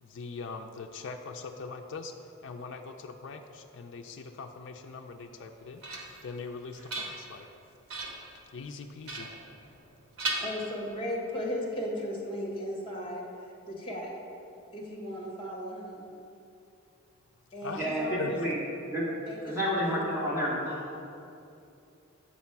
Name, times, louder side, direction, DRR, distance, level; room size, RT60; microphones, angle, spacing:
voice 1, 0.0-2.1 2.4-7.5 8.5-9.3 17.6-17.9 18.2-18.3, left 4 dB, 55° left, 4 dB, 0.4 m, -41 dB
sound 1, 5.3-6.3 6.7-7.5 7.9-8.3 9.0-9.9 10.2-11.1, right 2 dB, 75° right, 1.2 m, -37 dB
voice 2, 10.4-13.2 13.7-14.1 14.7-16.1 17.5-18.4 19.3-19.5 19.8-20.0, equal, 25° left, -1 dB, 1.3 m, -36 dB
voice 3, 17.8-18.6 18.9-19.2 19.4-21.0, equal, 15° right, -8 dB, 1.7 m, -30 dB
7.4 x 4.2 x 5.8 m, 2.7 s
head